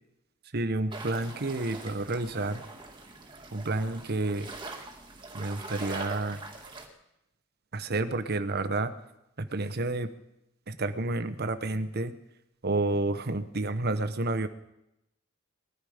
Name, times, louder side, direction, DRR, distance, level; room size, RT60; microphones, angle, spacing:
voice 1, 0.5-2.6 3.5-4.5 5.3-6.4 7.7-8.9 9.4-10.1 10.7-12.1 12.6-14.5, right 2 dB, 50° right, 11 dB, 1.0 m, -30 dB
sound 1, 0.9-6.9, right 2 dB, 25° right, 2.1 m, -43 dB
20.5 x 13.0 x 5.1 m, 0.87 s
head